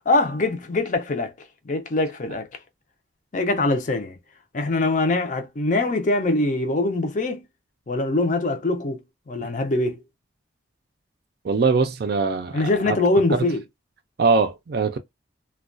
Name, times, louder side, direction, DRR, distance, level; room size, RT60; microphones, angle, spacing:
voice 1, 0.1-1.3 1.6-2.5 3.3-4.2 4.5-7.4 7.9-10.0 12.5-13.6, left 2 dB, 40° left, 0.5 m, -23 dB
voice 2, 11.4-13.0 14.2-15.0, right 4 dB, 55° right, 0.4 m, -22 dB
2.2 x 2.2 x 2.4 m
head